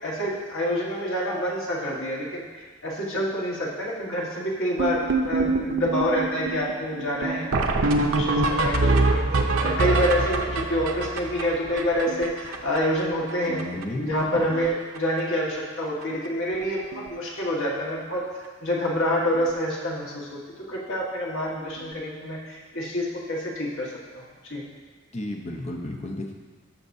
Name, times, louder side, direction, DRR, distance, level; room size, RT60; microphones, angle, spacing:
voice 1, 0.0-7.7 8.0-13.6 13.9-18.3 18.6-20.4 20.7-24.6, equal, 75° left, -4 dB, 1.6 m, -27 dB
sound 1, 4.8-13.0 13.3-13.4 13.6-13.8 14.1-14.7 15.0-15.2 16.0-16.1 16.5-16.6 16.9-17.1 19.3-19.4 21.8-21.9, right 2 dB, 90° right, 0.7 m, -25 dB
voice 2, 13.4-14.0 25.1-26.3, left 1 dB, 30° left, 2 dB, 0.7 m, -32 dB
13.5 x 5.9 x 2.7 m, 1.4 s
head